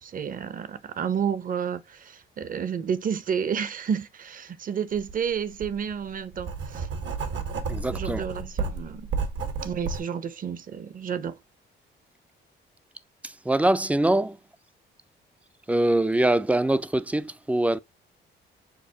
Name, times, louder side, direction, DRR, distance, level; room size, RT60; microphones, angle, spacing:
voice 1, 0.0-6.9 7.9-9.1 9.6-11.4, right 7 dB, 45° right, 0.7 m, -30 dB
Writing, 5.0-5.1 5.6-10.0, right 4 dB, 70° right, 1.0 m, -31 dB
voice 2, 7.7-8.2 13.2-14.4 15.7-17.8, right 1 dB, 5° right, 0.3 m, -23 dB
6.5 x 2.4 x 2.7 m
cardioid pair, 90°, 20 cm